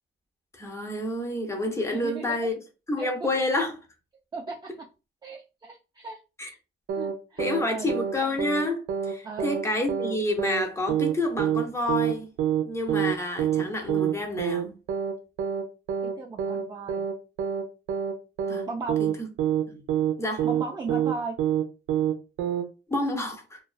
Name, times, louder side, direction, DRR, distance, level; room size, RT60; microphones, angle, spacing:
voice 1, 0.5-2.6 2.9-3.7 6.4-6.5 7.4-12.3 12.6-14.7 18.5-18.7 19.0-19.3 19.7-19.8 20.2-20.5 22.9-23.6, left 2 dB, 15° left, 0.7 m, -29 dB
voice 2, 1.9-2.2 3.0-3.1 4.3-4.6 5.2-6.2 6.9-7.9 9.2-9.5 16.2-17.0 18.7-19.0 20.4-21.3, right 3 dB, 20° right, 0.4 m, -36 dB
sound 1, 6.9-7.1 7.4-7.6 7.9-8.1 8.4-8.6 8.9-9.1 9.4-9.6 9.9-10.1 10.4-10.6 10.9-11.1 11.4-11.6 11.9-12.1 12.4-12.6 12.9-13.1 13.4-13.6 13.9-14.1 14.4-14.6 14.9-15.1 15.4-15.6 15.9-16.1 16.4-16.6 16.9-17.1 17.4-17.6 17.9-18.1 18.4-18.6 18.9-19.1 19.4-19.6 19.9-20.1 20.4-20.6 20.9-21.1 21.4-21.6 21.9-22.1 22.4-22.6, right 9 dB, 80° right, 0.5 m, -26 dB
2.3 x 2.2 x 2.3 m
cardioid pair, 90°, 20 cm